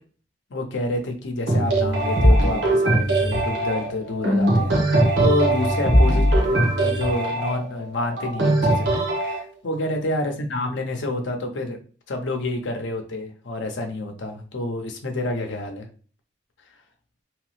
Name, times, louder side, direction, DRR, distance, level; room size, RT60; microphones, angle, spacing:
voice 1, 0.5-11.8 12.1-15.9, left 2 dB, 90° left, 3 dB, 0.7 m, -28 dB
sound 1, 1.5-9.4, right 1 dB, 85° right, 1.0 m, -20 dB
3.1 x 2.0 x 3.0 m, 0.40 s
head